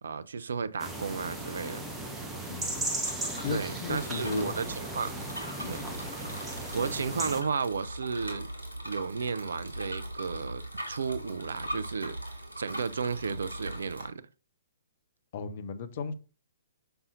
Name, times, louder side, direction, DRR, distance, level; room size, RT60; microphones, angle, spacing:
voice 1, 0.0-1.8 3.5-5.1 5.7-5.9 6.7-8.5 8.8-10.6 10.9-14.2, right 5 dB, 60° right, 0.5 m, -33 dB
sound 1, 0.8-7.4, right 1 dB, 10° right, 1.2 m, -36 dB
Bicycle, 2.3-14.1, right 1 dB, 90° left, 1.9 m, -41 dB
voice 2, 2.5-2.8 3.4-4.5 5.6-5.9 15.3-16.1, left 5 dB, 45° left, 0.8 m, -36 dB
6.8 x 5.4 x 2.6 m
figure-of-eight pair, 120°, 0 cm